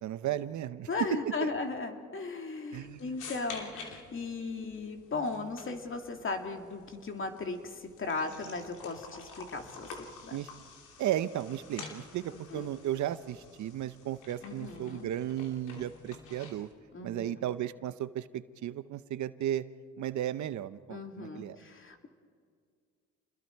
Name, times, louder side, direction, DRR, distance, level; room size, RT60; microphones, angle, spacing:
voice 1, 0.0-0.9 1.4-1.5 2.7-3.1 10.3-10.5 11.0-16.7 17.0-19.7 20.0-21.6, right 12 dB, 70° right, 14 dB, 0.8 m, -35 dB
voice 2, 0.9-9.9 10.2-10.4 12.3-12.7 14.4-15.1 16.9-17.4 20.9-22.1, left 3 dB, 40° left, 4 dB, 2.6 m, -37 dB
sound 1, 2.7-16.7, left 5 dB, 90° left, 2.7 m, -49 dB
29.0 x 21.0 x 4.6 m, 2.2 s
cardioid pair, 90°, 30 cm